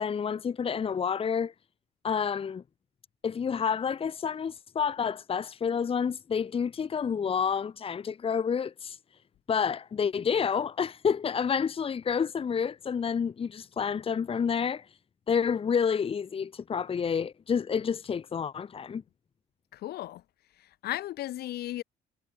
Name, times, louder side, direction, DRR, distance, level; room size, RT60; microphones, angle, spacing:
voice 1, 0.0-1.5 2.0-2.6 3.2-9.0 9.5-14.9 15.3-19.0, left 6 dB, 35° left, 1.5 m, -29 dB
voice 2, 19.7-20.2 20.6-21.8, left 14 dB, 70° left, 3.2 m, -35 dB
cardioid pair, 110°, 17 cm